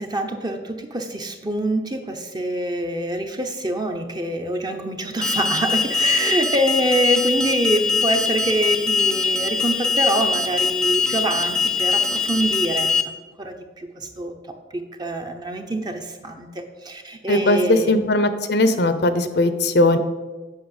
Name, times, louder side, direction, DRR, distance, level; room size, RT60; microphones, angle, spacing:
voice 1, 0.0-12.9 13.4-14.3 14.7-17.9, right 1 dB, 25° right, 5 dB, 1.0 m, -25 dB
Alarm, 5.2-13.0, left 4 dB, 5° left, 0.6 m, -22 dB
voice 2, 17.3-20.0, left 1 dB, 65° left, 10 dB, 0.8 m, -19 dB
8.5 x 5.9 x 8.0 m, 1.3 s
head